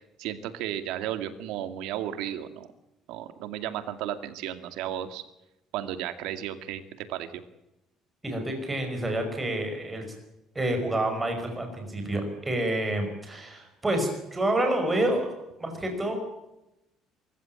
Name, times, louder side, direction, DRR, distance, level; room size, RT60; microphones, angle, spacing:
voice 1, 0.2-2.7 3.1-5.2 5.7-7.4, right 11 dB, 85° right, 10 dB, 2.2 m, -34 dB
voice 2, 8.2-10.1 10.6-15.3 15.6-16.2, right 1 dB, 10° right, 4 dB, 5.3 m, -28 dB
24.0 x 15.0 x 8.9 m, 0.92 s
cardioid pair, 170°, 0 cm